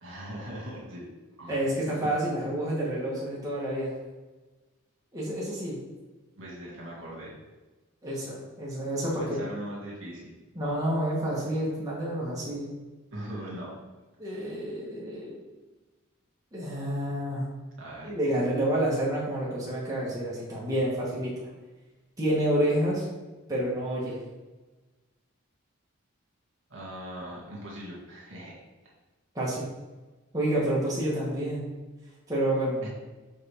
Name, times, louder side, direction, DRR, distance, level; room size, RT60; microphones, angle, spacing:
voice 1, 0.0-1.0 1.4-1.6 2.0-2.1 6.4-7.4 9.2-10.3 13.1-13.7 17.8-18.1 26.7-28.6 32.8-32.9, right 1 dB, 65° right, -4 dB, 2.0 m, -40 dB
voice 2, 1.5-3.9 5.1-5.8 8.0-9.4 10.5-12.7 14.2-15.4 16.5-17.4 18.0-21.3 22.2-23.1 23.5-24.2 29.3-29.7 30.3-31.7 32.3-32.8, right 1 dB, 15° right, -6 dB, 1.2 m, -29 dB
6.6 x 4.2 x 3.4 m, 1.2 s
head